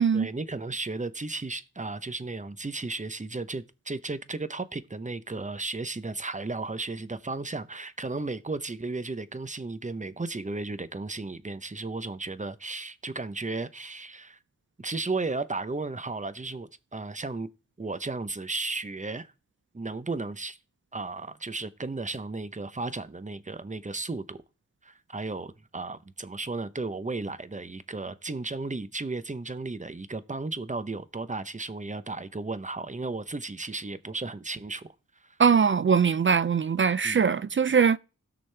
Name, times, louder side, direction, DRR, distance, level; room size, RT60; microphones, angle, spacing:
voice 1, 0.1-14.4 14.8-17.5 17.8-19.3 19.7-20.6 20.9-24.4 24.8-34.9 35.2-35.4 37.0-37.3, right 3 dB, 25° right, 0.8 m, -34 dB
voice 2, 35.4-38.0, right 6 dB, 40° right, 0.4 m, -22 dB
16.5 x 6.2 x 3.4 m
cardioid pair, 50°, 31 cm